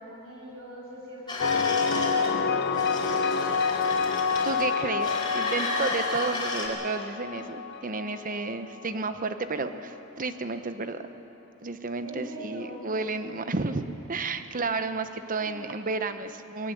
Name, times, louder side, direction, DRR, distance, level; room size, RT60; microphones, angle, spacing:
voice 1, 0.0-2.8 12.0-12.8 15.0-15.1 15.4-15.7, equal, 70° right, -3 dB, 6.9 m, -43 dB
sound 1, 1.3-2.3 2.7-4.7 5.0-6.7, left 2 dB, 20° left, 3.8 m, -33 dB
sound 2, 1.4-8.9, left 5 dB, 50° left, 0.7 m, -28 dB
voice 2, 4.4-11.1 11.6-13.8 14.1-16.7, right 3 dB, 40° right, 10 dB, 0.9 m, -31 dB
21.5 x 18.0 x 7.9 m, 3.0 s
head